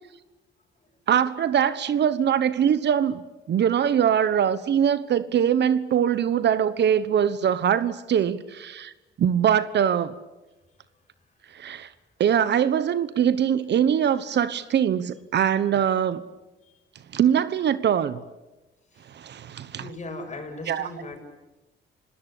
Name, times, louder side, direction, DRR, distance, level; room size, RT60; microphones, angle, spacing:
voice 1, 1.1-3.2 3.5-8.9 9.2-10.1 11.5-11.9 12.2-16.2 17.1-18.2 19.1-19.8 20.7-20.9, right 9 dB, 60° right, 1.2 m, -22 dB
voice 2, 19.8-21.2, left 2 dB, 35° left, 7.3 m, -38 dB
30.0 x 18.5 x 8.6 m
cardioid pair, 90°, 20 cm